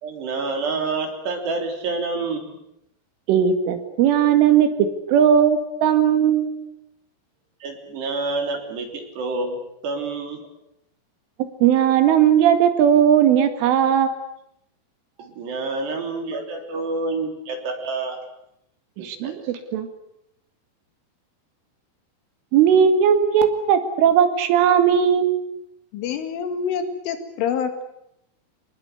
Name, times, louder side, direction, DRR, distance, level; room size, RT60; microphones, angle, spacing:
voice 1, 0.0-2.6 7.6-10.4 15.2-18.2 19.0-19.5, right 3 dB, 60° right, 3 dB, 5.4 m, -28 dB
voice 2, 3.3-4.7 5.1-6.6 11.6-14.2 16.3-16.4 19.0-19.9 22.5-25.3, right 8 dB, 85° right, 8 dB, 4.6 m, -17 dB
voice 3, 25.9-27.8, left 7 dB, 85° left, 8 dB, 4.6 m, -26 dB
26.0 x 20.5 x 8.2 m, 0.79 s
omnidirectional pair, 5.5 m